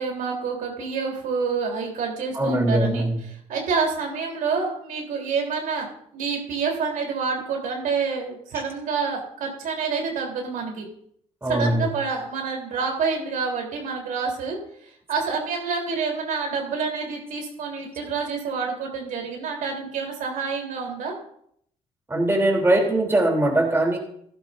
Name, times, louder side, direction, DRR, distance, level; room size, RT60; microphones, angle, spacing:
voice 1, 0.0-3.0 3.5-5.9 6.1-10.9 11.5-21.2, right 5 dB, 70° right, 1 dB, 3.6 m, -28 dB
voice 2, 2.3-3.2 11.4-11.9 22.1-24.0, right 1 dB, 15° right, 0 dB, 3.4 m, -21 dB
16.5 x 11.5 x 2.7 m, 0.67 s
cardioid pair, 85°, 14 cm